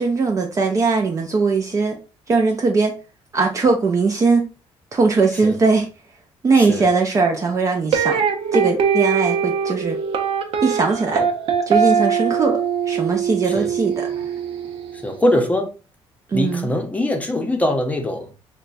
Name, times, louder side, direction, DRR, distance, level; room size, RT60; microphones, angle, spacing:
voice 1, 0.0-2.0 2.3-2.9 3.3-4.5 4.9-5.9 6.4-8.2 8.5-10.0 10.6-11.3 11.7-14.1 16.3-16.7, right 4 dB, 30° right, 0.5 m, -19 dB
sound 1, 7.9-15.0, right 7 dB, 60° right, 0.7 m, -21 dB
voice 2, 15.0-15.7 16.3-18.3, left 1 dB, 15° left, 0.7 m, -22 dB
2.9 x 2.2 x 4.0 m
cardioid pair, 120°, 11 cm